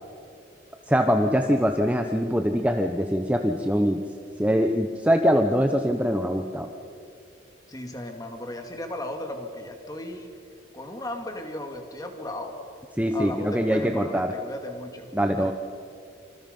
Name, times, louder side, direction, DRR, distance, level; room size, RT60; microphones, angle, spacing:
voice 1, 0.9-4.0 4.4-6.7 13.0-14.3 15.1-15.5, equal, 5° right, 5 dB, 0.8 m, -23 dB
voice 2, 7.7-10.3 10.7-12.6 13.1-15.1 15.4-15.5, left 1 dB, 20° left, 4 dB, 2.4 m, -36 dB
26.5 x 26.0 x 5.3 m, 2.6 s
head